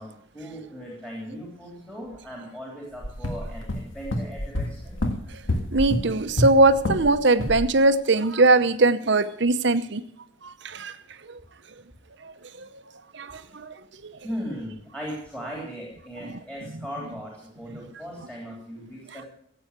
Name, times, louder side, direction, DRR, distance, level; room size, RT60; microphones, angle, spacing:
voice 1, 0.0-5.0 13.5-13.6 14.2-19.2, equal, 5° left, 3.3 m, -38 dB
sound 1, 3.0-7.1 7.4-7.7, left 1 dB, 70° left, 1.9 m, -28 dB
voice 2, 5.7-10.0 10.7-10.9, right 2 dB, 55° right, 0.8 m, -20 dB
14.5 x 8.7 x 8.1 m
head